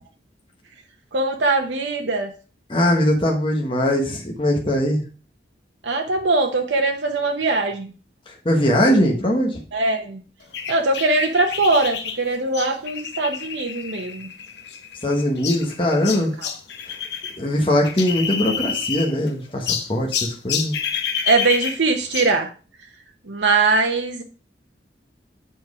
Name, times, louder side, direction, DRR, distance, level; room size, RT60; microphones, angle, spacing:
voice 1, 1.1-2.3 5.8-7.9 9.7-10.2 10.7-14.3 16.4-16.5 21.3-22.5 23.3-24.2, right 3 dB, 80° right, 3 dB, 0.9 m, -21 dB
voice 2, 2.7-5.0 8.3-9.6 15.0-16.3 17.4-20.8, left 1 dB, 30° left, -1 dB, 1.1 m, -21 dB
sound 1, 10.5-17.4 17.6-19.3 19.7-22.4, left 7 dB, 70° left, 0.9 m, -29 dB
7.3 x 4.4 x 4.8 m, 0.35 s
head